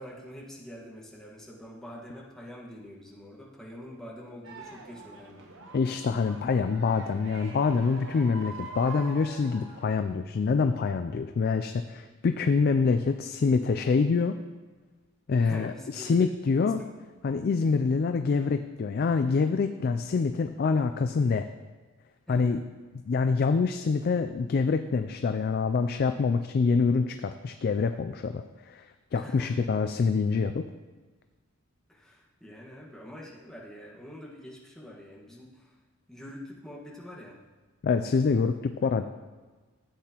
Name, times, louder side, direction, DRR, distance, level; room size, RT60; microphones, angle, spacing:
voice 1, 0.0-5.5 15.4-16.2 16.5-16.9 22.3-22.5 29.1-29.5 31.9-35.7 36.1-37.4 38.8-39.0, equal, ahead, -5 dB, 1.5 m, -45 dB
sound 1, 4.4-9.9, right 3 dB, 60° right, 1.0 m, -44 dB
voice 2, 5.7-14.4 15.3-16.8 17.2-21.5 22.3-22.6 23.1-28.9 29.1-30.6 37.8-39.0, left 4 dB, 45° left, 8 dB, 0.3 m, -26 dB
13.5 x 8.4 x 2.9 m, 1.4 s
head